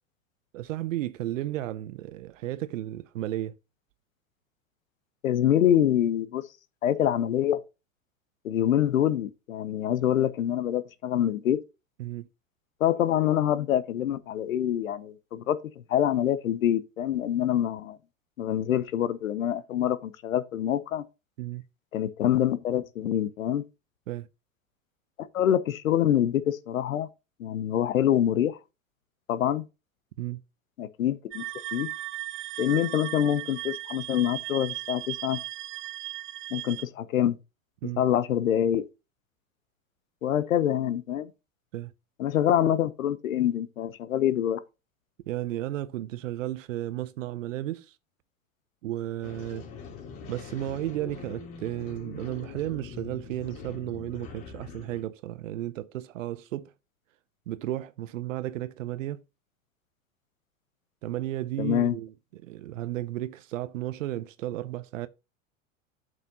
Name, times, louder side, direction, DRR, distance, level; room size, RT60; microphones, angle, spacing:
voice 1, 0.5-3.5 12.0-12.3 21.4-21.6 24.1-24.3 30.2-30.4 37.8-38.0 41.7-41.9 45.3-47.9 48.8-49.7 50.3-56.7 57.5-59.2 61.0-65.1, right 14 dB, 75° right, 0.7 m, -33 dB
voice 2, 5.2-6.4 6.8-7.6 8.4-11.6 12.8-15.6 15.9-18.0 18.4-21.0 21.9-23.6 25.3-27.1 27.4-28.6 29.3-29.6 30.8-31.4 31.7-31.9 32.6-35.4 36.5-37.4 38.0-38.8 40.2-41.3 42.2-44.6 61.6-61.9, left 11 dB, 85° left, 0.9 m, -25 dB
sound 1, 31.3-36.8, right 17 dB, 30° right, 0.6 m, -37 dB
sound 2, 49.2-55.0, left 6 dB, 55° left, 3.2 m, -43 dB
8.5 x 6.7 x 2.8 m
hypercardioid pair, 100°, 39 cm